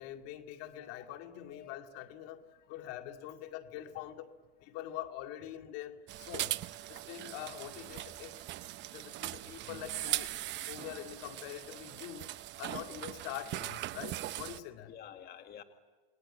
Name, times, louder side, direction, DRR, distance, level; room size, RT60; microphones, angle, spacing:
voice 1, 0.0-4.3 4.6-8.4 8.9-10.3 10.7-14.9, left 12 dB, 55° left, 6 dB, 2.2 m, -44 dB
voice 2, 2.6-2.9 14.9-15.6, left 9 dB, 30° left, 7 dB, 1.8 m, -51 dB
sound 1, 6.1-14.6, right 15 dB, 40° right, 0.9 m, -40 dB
28.5 x 21.0 x 9.9 m, 1.2 s
supercardioid pair, 115°, 29 cm